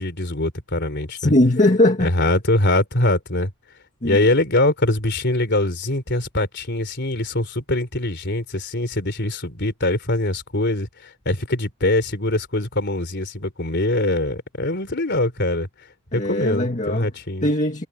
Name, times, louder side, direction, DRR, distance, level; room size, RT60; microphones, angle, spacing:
voice 1, 0.0-1.3 2.0-3.5 4.0-15.7 16.1-17.5, left 2 dB, 50° left, 3.7 m, -23 dB
voice 2, 1.2-2.1 4.0-4.3 16.1-17.1 17.4-17.9, left 1 dB, 35° left, 1.8 m, -19 dB
head